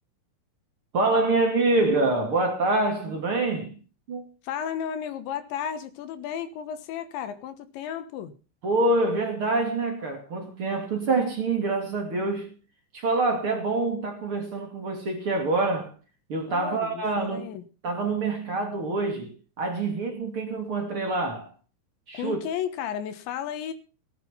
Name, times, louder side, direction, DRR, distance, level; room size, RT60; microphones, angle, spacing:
voice 1, 0.9-3.8 4.1-4.3 8.6-12.5 12.9-15.9 16.3-17.5 17.8-21.5 22.1-22.4, right 2 dB, 35° right, 2.4 m, -26 dB
voice 2, 4.4-8.3 16.5-17.6 22.1-23.7, left 9 dB, 75° left, 3.3 m, -33 dB
18.0 x 9.1 x 5.7 m
omnidirectional pair, 5.7 m